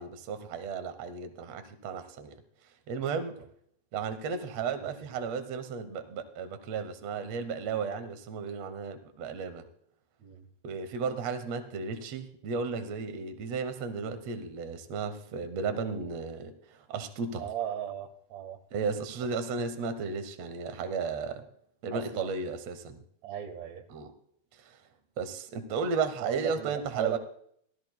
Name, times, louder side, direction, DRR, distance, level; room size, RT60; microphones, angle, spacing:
voice 1, 0.0-2.3 2.9-3.4 3.9-9.6 10.6-17.5 18.7-21.5 21.8-23.0 23.9-24.1 24.6-24.8 25.2-27.2, right 5 dB, 90° right, 9 dB, 1.4 m, -34 dB
voice 2, 17.4-18.6 21.9-22.3 23.2-23.8 26.2-27.2, right 9 dB, 60° right, 6 dB, 1.9 m, -36 dB
18.0 x 13.5 x 2.2 m, 0.65 s
omnidirectional pair, 4.5 m